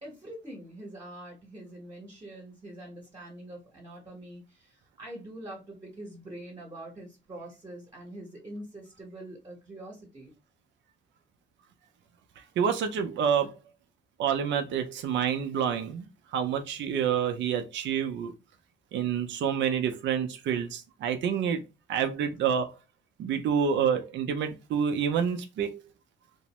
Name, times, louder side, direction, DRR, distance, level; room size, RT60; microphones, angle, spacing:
voice 1, 0.0-10.3, right 1 dB, 20° right, 0.9 m, -44 dB
voice 2, 12.6-13.5 14.2-16.0 16.3-18.3 18.9-21.6 21.9-22.7 23.2-25.8, right 7 dB, 65° right, 0.5 m, -28 dB
2.6 x 2.0 x 2.9 m
cardioid pair, 90°, 20 cm